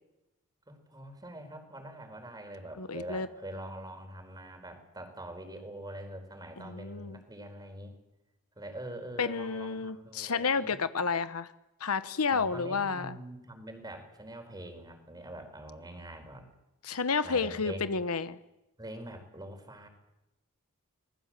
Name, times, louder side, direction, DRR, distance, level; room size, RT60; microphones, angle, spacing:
voice 1, 0.7-8.0 8.6-10.8 12.3-16.5 17.2-18.0 18.8-19.9, right 1 dB, 20° right, 5 dB, 4.5 m, -44 dB
voice 2, 2.8-3.3 6.6-7.2 9.2-11.5 11.8-13.1 16.8-18.3, left 5 dB, 80° left, 13 dB, 1.0 m, -31 dB
26.0 x 19.5 x 7.6 m, 0.95 s
head